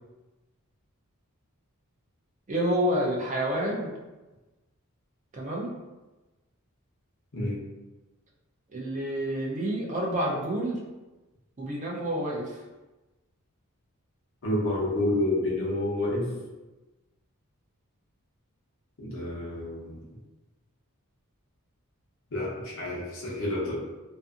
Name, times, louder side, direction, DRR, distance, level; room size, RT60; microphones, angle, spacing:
voice 1, 2.5-3.9 5.3-5.7 8.7-10.8 11.6-12.6, equal, 35° right, -3 dB, 0.5 m, -28 dB
voice 2, 14.4-16.3 19.0-20.0 22.3-23.8, left 1 dB, 60° left, -5 dB, 0.8 m, -29 dB
2.6 x 2.6 x 2.4 m, 1.1 s
head